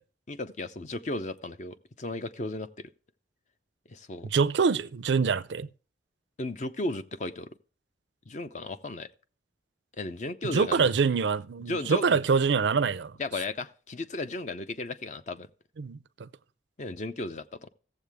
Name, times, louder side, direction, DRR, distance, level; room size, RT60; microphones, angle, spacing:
voice 1, 0.3-2.9 3.9-4.3 6.4-7.5 8.3-9.1 10.0-10.9 11.7-12.2 13.2-15.5 16.8-17.7, left 2 dB, 40° left, 0.6 m, -35 dB
voice 2, 4.2-5.7 10.4-13.1 15.8-16.3, right 5 dB, 80° right, 0.5 m, -25 dB
15.5 x 7.4 x 3.4 m
head